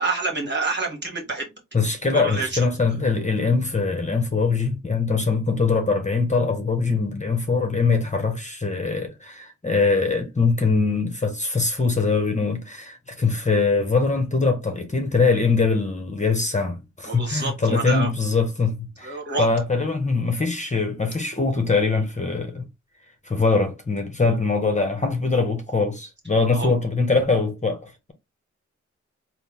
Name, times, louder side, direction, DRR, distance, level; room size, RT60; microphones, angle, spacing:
voice 1, 0.0-1.5 2.1-2.6 17.1-18.1 19.0-19.5 26.5-26.7, right 3 dB, 40° right, 1.8 m, -27 dB
voice 2, 1.7-22.7 23.3-28.1, left 4 dB, 25° left, 1.1 m, -22 dB
4.1 x 2.3 x 3.6 m
cardioid pair, 55°, 29 cm